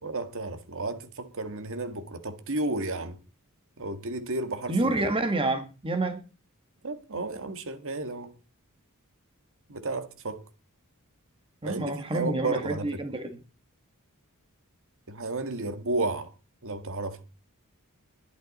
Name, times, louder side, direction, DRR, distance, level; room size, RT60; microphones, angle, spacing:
voice 1, 0.0-3.2 3.8-5.0 6.8-8.3 9.7-10.4 11.6-13.0 15.1-16.3 16.6-17.2, right 2 dB, 65° right, 1.8 m, -32 dB
voice 2, 4.7-6.2 11.6-13.4, right 2 dB, 25° right, 1.6 m, -28 dB
21.5 x 8.2 x 4.2 m
head